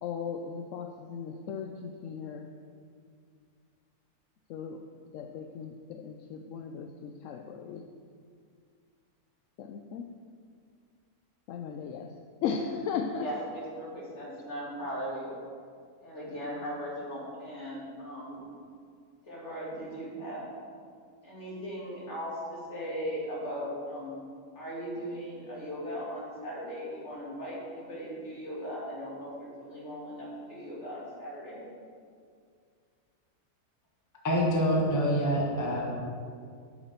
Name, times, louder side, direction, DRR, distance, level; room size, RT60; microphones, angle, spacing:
voice 1, 0.0-2.5 4.5-4.8 5.1-7.8 9.6-10.0 11.5-12.1 12.4-13.3, left 6 dB, 65° left, 4 dB, 0.8 m, -36 dB
voice 2, 13.2-15.3 16.0-18.4 19.2-20.5 21.2-24.1 24.5-31.7, equal, 50° left, -5 dB, 2.8 m, -38 dB
voice 3, 34.2-35.9, equal, 15° left, -2 dB, 1.2 m, -26 dB
8.4 x 5.9 x 6.8 m, 2.2 s
omnidirectional pair, 1.6 m